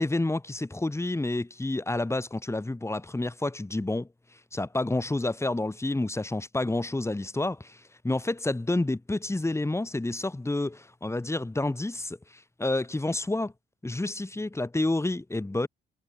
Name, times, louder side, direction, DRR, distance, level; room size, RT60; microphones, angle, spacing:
voice 1, 0.0-13.5 13.8-15.7, left 2 dB, 15° left, 4.5 m, -29 dB
cardioid pair, 90°, 20 cm